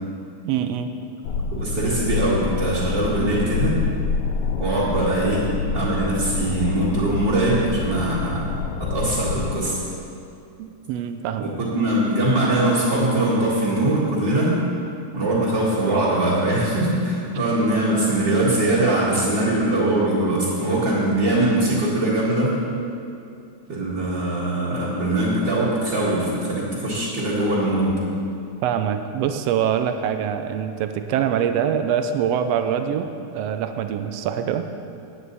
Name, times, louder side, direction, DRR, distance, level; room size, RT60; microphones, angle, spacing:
voice 1, 0.4-0.9 10.6-11.5 28.6-33.1 33.3-34.7, right 8 dB, 80° right, 8 dB, 1.4 m, -24 dB
sound 1, 1.2-9.6, left 5 dB, 85° left, 1.3 m, -27 dB
voice 2, 1.5-3.8 4.6-5.5 5.7-8.5 8.8-9.8 11.4-14.6 15.1-22.5 23.7-28.0, right 1 dB, 40° right, -9 dB, 2.2 m, -22 dB
16.0 x 9.5 x 4.1 m, 2.6 s
omnidirectional pair, 3.5 m